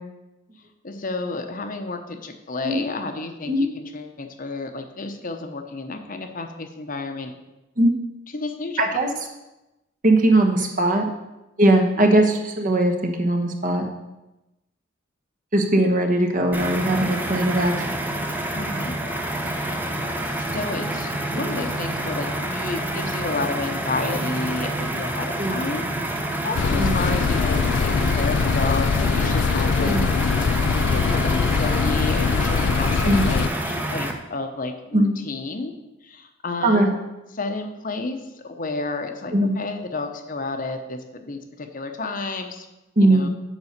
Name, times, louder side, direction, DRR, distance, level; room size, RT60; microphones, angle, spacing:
voice 1, 0.8-7.3 8.3-8.8 18.5-18.9 19.4-19.8 20.5-29.9 30.9-35.7 36.0-37.0 37.3-38.2 38.4-42.7 43.0-43.3, left 3 dB, 45° left, 6 dB, 0.8 m, -31 dB
voice 2, 8.8-9.1 10.0-11.0 11.6-13.9 15.5-18.0 21.3-21.5 25.4-25.6 26.7-26.9 29.8-30.0 33.0-33.3 34.9-35.1 36.6-36.9 39.3-39.6 43.0-43.3, right 1 dB, 45° right, 3 dB, 1.1 m, -19 dB
sound 1, 16.5-34.1, right 1 dB, 10° right, 0.7 m, -28 dB
sound 2, 26.6-33.5, left 5 dB, 65° left, 0.4 m, -22 dB
7.2 x 5.3 x 6.6 m, 0.99 s
head